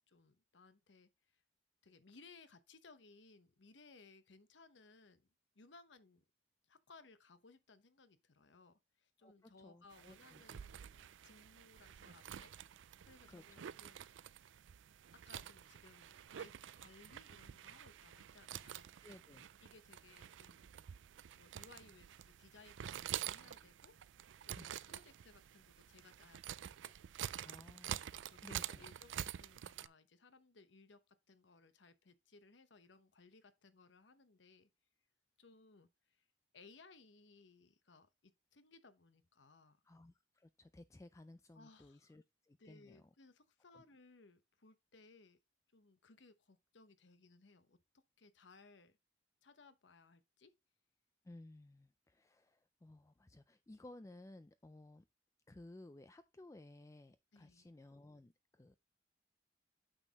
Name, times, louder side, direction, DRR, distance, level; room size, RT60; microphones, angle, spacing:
voice 1, 0.1-1.4 1.8-5.3 5.5-6.2 6.7-14.1 15.2-18.9 19.6-20.9 21.4-24.0 24.4-26.9 27.3-27.7 27.9-34.7 35.4-36.3 36.5-39.8 41.5-42.2 42.6-45.4 45.7-47.8 48.2-49.0 49.4-50.5 57.3-57.7, left 3 dB, 70° left, 0.9 m, -63 dB
voice 2, 9.2-10.7 13.3-13.7 19.0-19.5 24.6-24.7 27.4-28.1 28.4-28.9 39.8-43.1 43.7-43.8 51.2-55.1 55.5-58.7, left 1 dB, 15° left, 0.3 m, -58 dB
sound 1, 9.9-29.9, right 10 dB, 80° right, 0.4 m, -48 dB
8.8 x 6.4 x 2.9 m
head